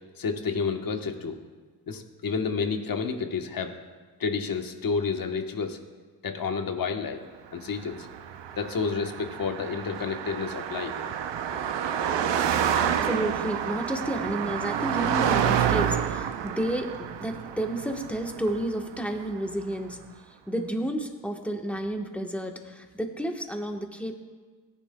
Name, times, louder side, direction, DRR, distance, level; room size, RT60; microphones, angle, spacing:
voice 1, 0.2-1.4 1.9-3.8 4.2-5.8 6.2-7.2 7.5-8.1 8.6-10.9, left 5 dB, 50° left, 5 dB, 1.2 m, -30 dB
Car passing by, 7.8-19.3, right 9 dB, 75° right, 0.7 m, -29 dB
voice 2, 12.8-20.0 20.3-24.2, right 1 dB, 5° left, 3 dB, 1.1 m, -31 dB
17.0 x 10.5 x 2.2 m, 1.4 s
cardioid pair, 90°, 43 cm